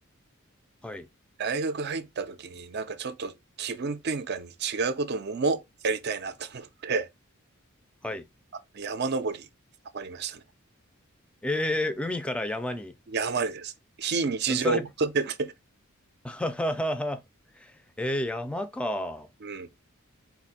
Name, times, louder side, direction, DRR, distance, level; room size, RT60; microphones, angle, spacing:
voice 1, 1.4-7.1 8.7-9.5 9.9-10.4 13.1-13.7 14.0-15.5 19.4-19.7, right 4 dB, 50° right, 0.5 m, -30 dB
voice 2, 11.4-12.9 14.5-14.8 16.2-17.2 17.6-17.7 18.0-19.3, left 1 dB, 5° left, 0.4 m, -30 dB
4.2 x 2.6 x 4.2 m
head